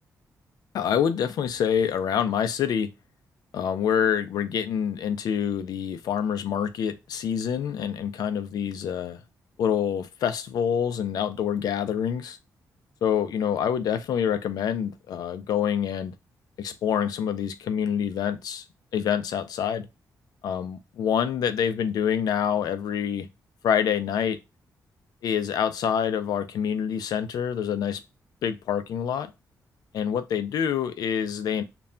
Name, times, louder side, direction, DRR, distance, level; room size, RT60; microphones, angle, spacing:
voice 1, 0.7-2.9 3.5-9.2 9.6-12.4 13.0-16.1 16.6-18.6 18.9-19.9 20.4-23.3 23.6-24.4 25.2-28.0 28.4-29.3 29.9-31.6, left 8 dB, 75° left, 0.4 m, -26 dB
2.2 x 2.1 x 3.6 m
wide cardioid pair, 145°, 7 cm